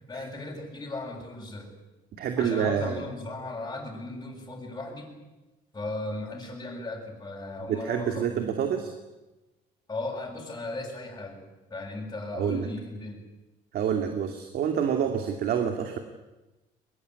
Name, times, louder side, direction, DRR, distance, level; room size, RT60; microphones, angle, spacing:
voice 1, 0.1-1.7 2.4-5.1 5.7-8.8 9.9-11.4 11.7-13.2, left 2 dB, 20° left, -3 dB, 7.2 m, -37 dB
voice 2, 2.2-3.0 7.7-8.9 12.3-12.7 13.7-16.0, right 8 dB, 65° right, 5 dB, 2.6 m, -27 dB
22.5 x 22.0 x 9.7 m, 1.1 s
cardioid pair, 110°, 17 cm